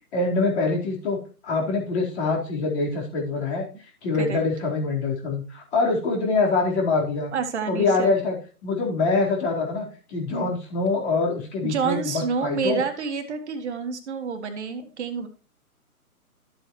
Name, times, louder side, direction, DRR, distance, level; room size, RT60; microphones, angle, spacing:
voice 1, 0.1-1.2 1.4-3.7 4.0-7.3 7.7-8.4 8.6-12.8, left 3 dB, 45° left, -1 dB, 4.2 m, -24 dB
voice 2, 7.3-8.1 11.6-15.3, right 5 dB, 50° right, 6 dB, 1.7 m, -28 dB
12.5 x 7.9 x 3.1 m, 0.37 s
figure-of-eight pair, 140°, 45 cm